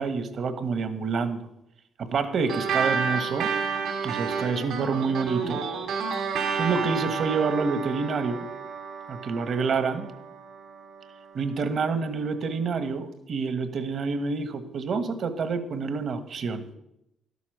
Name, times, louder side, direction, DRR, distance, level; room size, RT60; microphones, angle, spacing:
voice 1, 0.0-1.5 2.0-3.5 4.0-5.6 6.5-8.5 9.1-10.1 11.3-16.7, right 4 dB, 55° right, 11 dB, 1.3 m, -28 dB
sound 1, 2.5-11.3, right 5 dB, 80° right, 2.7 m, -30 dB
12.0 x 8.4 x 6.6 m, 0.83 s
cardioid pair, 90°, 0 cm